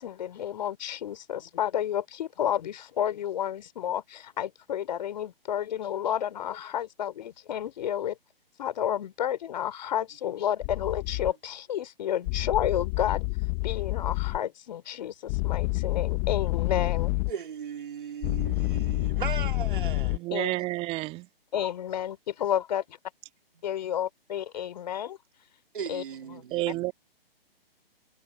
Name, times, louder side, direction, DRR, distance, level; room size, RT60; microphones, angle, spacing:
voice 1, 0.0-8.2 8.6-13.2 13.6-17.1 20.3-20.5 21.5-23.0 23.6-25.2 25.9-26.0 26.3-26.4, left 10 dB, 45° left, 3.3 m, -31 dB
sound 1, 10.6-11.3 12.3-14.4 15.3-17.3 18.2-20.2, left 30 dB, 20° left, 1.0 m, -28 dB
voice 2, 17.3-20.2 25.7-26.9, right 8 dB, 55° right, 3.3 m, -37 dB
voice 3, 20.1-21.3 26.5-26.9, right 19 dB, 20° right, 2.4 m, -30 dB
figure-of-eight pair, 135°, 30 cm